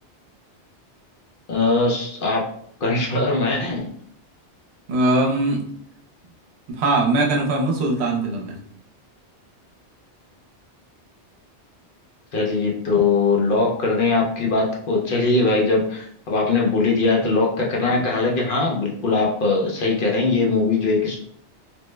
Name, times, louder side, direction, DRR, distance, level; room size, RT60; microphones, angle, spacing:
voice 1, 1.5-2.5 2.8-3.9 12.3-21.2, left 3 dB, 55° left, -2 dB, 0.7 m, -21 dB
voice 2, 4.9-5.6 6.7-8.6, right 2 dB, 70° right, 0 dB, 0.9 m, -21 dB
3.0 x 2.0 x 3.2 m, 0.64 s
omnidirectional pair, 1.2 m